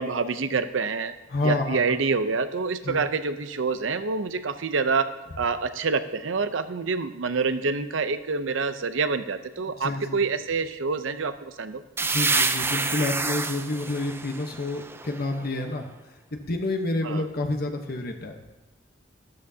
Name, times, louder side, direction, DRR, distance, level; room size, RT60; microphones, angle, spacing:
voice 1, 0.0-1.1 1.4-5.1 5.4-11.8 17.0-17.3, right 4 dB, 90° right, 10 dB, 0.7 m, -27 dB
voice 2, 1.3-2.0 2.8-3.0 9.7-10.2 12.0-15.9 16.5-18.4, left 2 dB, 55° left, 4 dB, 1.0 m, -29 dB
sound 1, 12.0-15.6, right 3 dB, 10° right, 0.5 m, -28 dB
13.0 x 13.0 x 2.8 m, 1.1 s
head